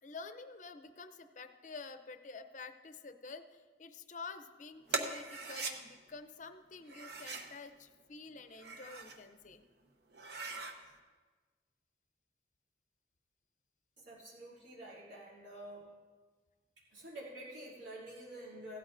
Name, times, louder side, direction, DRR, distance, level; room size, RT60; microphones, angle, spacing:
voice 1, 0.0-9.6, left 4 dB, 45° left, 10 dB, 0.6 m, -49 dB
sound 1, 4.9-5.7 6.8-7.5 8.4-9.2 9.6-9.7 10.1-10.8, right 3 dB, 60° right, 1.0 m, -40 dB
voice 2, 14.0-15.9 16.9-18.8, right 1 dB, 80° right, -8 dB, 2.9 m, -48 dB
16.5 x 12.5 x 2.6 m, 1.4 s
head